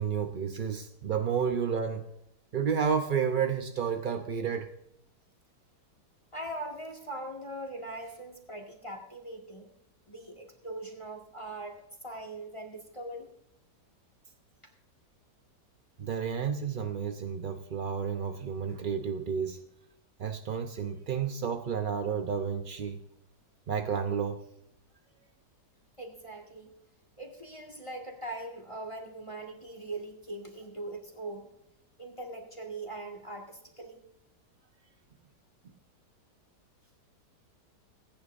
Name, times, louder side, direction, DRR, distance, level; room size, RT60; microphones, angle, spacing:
voice 1, 0.0-2.1 2.5-4.7 16.0-19.6 20.2-23.0 23.7-24.4, right 7 dB, 55° right, 5 dB, 0.5 m, -31 dB
voice 2, 6.3-9.7 10.1-13.3 26.0-26.7 27.2-31.5 32.0-34.0, right 1 dB, 20° left, 3 dB, 1.8 m, -41 dB
20.5 x 9.7 x 2.6 m, 0.84 s
omnidirectional pair, 1.8 m